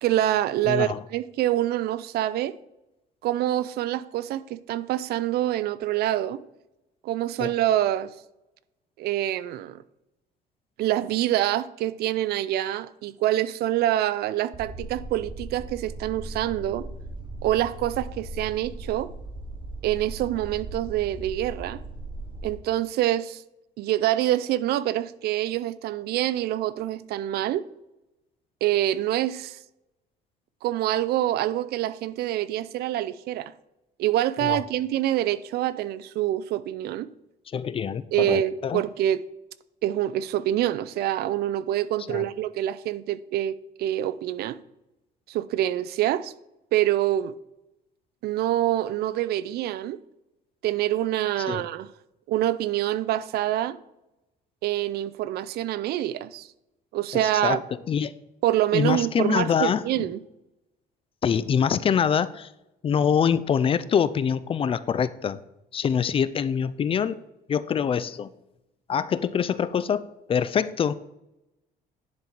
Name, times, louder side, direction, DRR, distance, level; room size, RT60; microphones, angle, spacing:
voice 1, 0.0-2.5 3.2-6.4 7.0-8.1 9.0-9.8 10.8-16.9 17.4-19.1 19.8-21.8 22.4-23.4 23.8-27.6 28.6-29.6 30.6-33.5 34.0-37.1 38.1-39.2 39.8-44.6 45.3-46.3 46.7-47.3 48.2-50.0 50.6-51.9 52.3-53.8 54.6-56.5 56.9-57.6 58.4-60.2, right 13 dB, 70° right, 0.4 m, -26 dB
voice 2, 0.7-1.0 7.4-7.5 34.4-34.6 37.5-38.8 42.1-42.3 51.5-51.6 57.1-57.6 57.9-58.1 58.7-60.1 61.2-62.5 62.8-65.4 65.7-67.2 67.5-68.3 68.9-70.9, left 7 dB, 35° left, 0.4 m, -25 dB
Hallway Ambience (Can Be Looped), 14.5-22.5, right 2 dB, 30° right, 1.1 m, -38 dB
10.5 x 4.4 x 3.9 m
cardioid pair, 110°, 17 cm